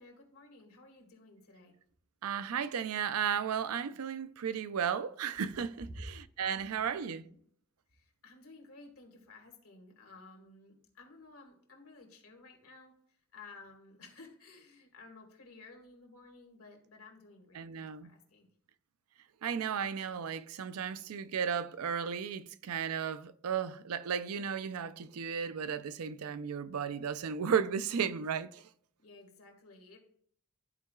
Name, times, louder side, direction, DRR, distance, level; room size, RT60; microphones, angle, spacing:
voice 1, 0.0-1.8 5.8-6.1 6.9-7.4 7.9-18.5 29.0-30.0, left 2 dB, 80° left, 1.8 m, -54 dB
voice 2, 2.2-7.2 17.5-18.1 19.4-28.6, right 7 dB, 90° right, 0.4 m, -34 dB
13.0 x 4.5 x 2.3 m
head